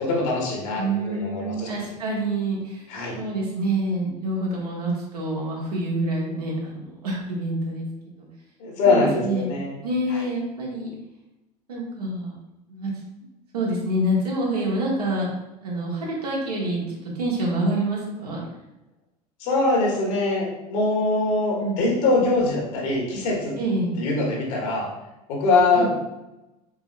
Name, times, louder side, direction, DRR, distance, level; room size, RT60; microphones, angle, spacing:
voice 1, 0.0-1.7 2.9-3.2 8.6-9.7 10.1-10.2 19.4-23.6 24.0-24.9 25.3-26.0, left 3 dB, 60° left, -2 dB, 1.5 m, -23 dB
voice 2, 0.7-2.8 3.2-8.2 8.8-9.5 9.8-10.9 11.7-12.3 12.7-12.9 13.5-15.3 15.6-18.4 21.5-21.8 23.6-23.9 25.7-25.9, right 1 dB, 75° right, -4 dB, 1.4 m, -27 dB
4.6 x 3.9 x 2.5 m, 0.97 s
figure-of-eight pair, 70°, 20 cm